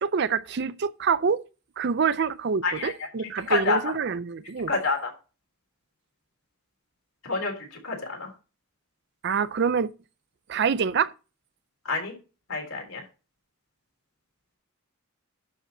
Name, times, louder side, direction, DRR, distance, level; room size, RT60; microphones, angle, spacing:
voice 1, 0.0-1.4 1.8-4.7 9.2-9.9 10.5-11.1, right 6 dB, 50° right, 0.5 m, -26 dB
voice 2, 2.6-3.8 4.7-5.1 7.2-8.3 11.8-12.1 12.5-13.0, left 3 dB, 70° left, 3.6 m, -28 dB
11.5 x 5.0 x 4.2 m
head